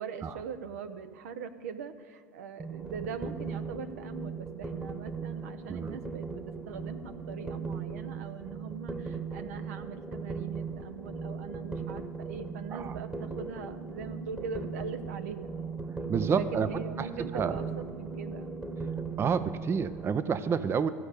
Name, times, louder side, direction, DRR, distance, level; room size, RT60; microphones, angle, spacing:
voice 1, 0.0-15.5 16.3-17.7 18.0-18.5, right 6 dB, 70° right, 9 dB, 0.7 m, -41 dB
sound 1, 2.6-20.1, right 4 dB, 15° right, 1.2 m, -38 dB
voice 2, 16.1-16.7 17.0-17.6 19.2-20.9, right 6 dB, 30° right, 13 dB, 0.5 m, -29 dB
14.5 x 5.2 x 8.1 m, 2.2 s
hypercardioid pair, 75°, 8 cm